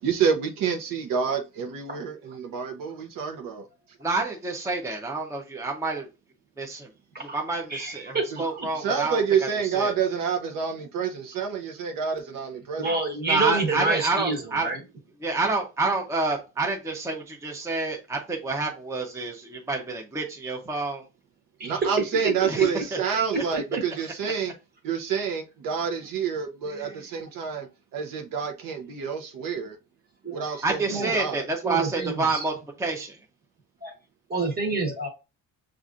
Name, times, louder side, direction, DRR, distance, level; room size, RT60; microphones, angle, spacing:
voice 1, 0.0-3.7 8.3-8.4 8.7-12.9 21.6-24.5 24.8-27.7 27.9-29.8 30.3-31.5, right 6 dB, 65° right, 0.8 m, -28 dB
voice 2, 4.0-6.1 6.6-6.9 7.3-9.2 9.7-9.9 13.3-14.7 15.2-21.0 22.5-23.0 30.6-32.5 32.8-33.2, right 3 dB, 10° right, 0.6 m, -28 dB
voice 3, 7.7-8.7 12.7-14.8 21.6-21.8 23.7-23.8 30.2-30.4 30.9-31.2 31.6-32.4 33.8-33.9 34.3-35.1, right 3 dB, 25° right, 1.2 m, -28 dB
6.7 x 2.5 x 2.5 m
cardioid pair, 145°, 36 cm